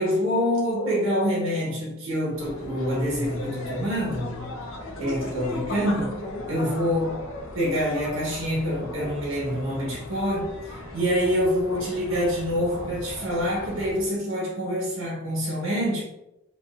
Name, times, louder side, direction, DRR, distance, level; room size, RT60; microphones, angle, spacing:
voice 1, 0.0-4.4 5.0-7.1 7.5-16.0, equal, 80° right, -5 dB, 1.0 m, -26 dB
sound 1, 2.3-14.1, left 2 dB, 80° left, 0.6 m, -38 dB
2.9 x 2.5 x 2.4 m, 0.91 s
head